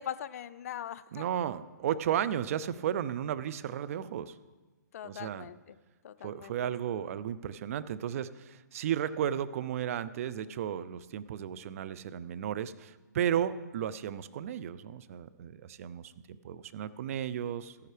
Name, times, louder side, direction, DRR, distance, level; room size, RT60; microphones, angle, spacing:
voice 1, 0.0-1.2 4.9-5.8 6.0-6.5, left 10 dB, 50° left, 15 dB, 0.4 m, -41 dB
voice 2, 1.1-4.4 5.0-5.5 6.2-17.8, right 9 dB, 50° right, 14 dB, 0.5 m, -34 dB
13.5 x 10.5 x 3.3 m, 1.2 s
hypercardioid pair, 135°, 10 cm